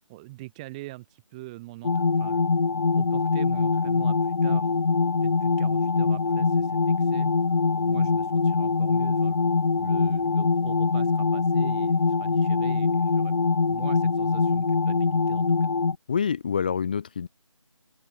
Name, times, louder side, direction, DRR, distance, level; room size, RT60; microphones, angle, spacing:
voice 1, 0.1-2.4 3.0-4.7 5.2-9.5 9.8-13.4 13.7-15.7, right 20 dB, 15° right, 4.9 m, -43 dB
sound 1, 1.8-16.0, left 4 dB, 50° left, 0.6 m, -23 dB
voice 2, 16.1-17.3, left 6 dB, 15° left, 0.7 m, -26 dB
open air
figure-of-eight pair, 165°, 17 cm